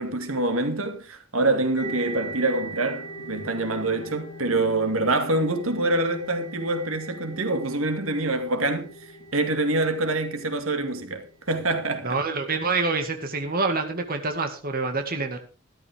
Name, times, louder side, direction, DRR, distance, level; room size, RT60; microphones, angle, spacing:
voice 1, 0.0-8.9 9.3-12.2, right 2 dB, 75° right, 2.3 m, -25 dB
sound 1, 1.8-11.3, right 2 dB, 40° left, 5.7 m, -41 dB
voice 2, 12.0-15.4, right 3 dB, 45° right, 2.0 m, -26 dB
14.0 x 13.5 x 3.6 m
head